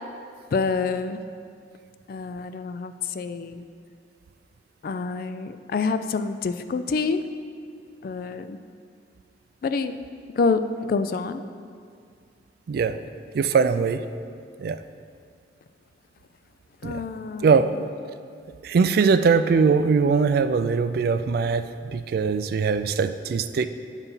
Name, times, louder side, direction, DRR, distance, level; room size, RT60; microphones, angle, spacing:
voice 1, 0.5-1.2 2.1-3.7 4.8-7.2 8.0-8.6 9.6-10.0 10.4-10.6 10.9-11.4 16.8-17.9, left 4 dB, 50° left, 10 dB, 0.3 m, -27 dB
voice 2, 13.3-14.0 14.6-14.8 16.8-17.0 17.4-17.7 18.6-23.7, right 5 dB, 55° right, 11 dB, 0.3 m, -21 dB
9.0 x 4.0 x 5.5 m, 2.2 s
head